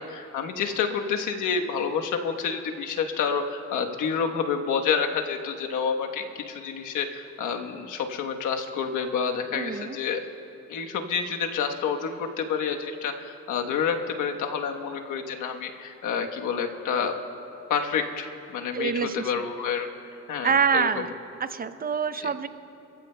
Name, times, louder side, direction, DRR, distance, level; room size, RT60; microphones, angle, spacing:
voice 1, 0.0-10.2 10.7-17.1 17.7-19.9 20.3-21.0 22.2-22.3, left 6 dB, 85° left, 4 dB, 1.2 m, -29 dB
voice 2, 9.5-10.0 18.7-19.3 20.4-21.1 21.4-22.5, right 6 dB, 30° right, 12 dB, 0.6 m, -26 dB
28.0 x 15.5 x 2.2 m, 2.9 s
cardioid pair, 90°, 30 cm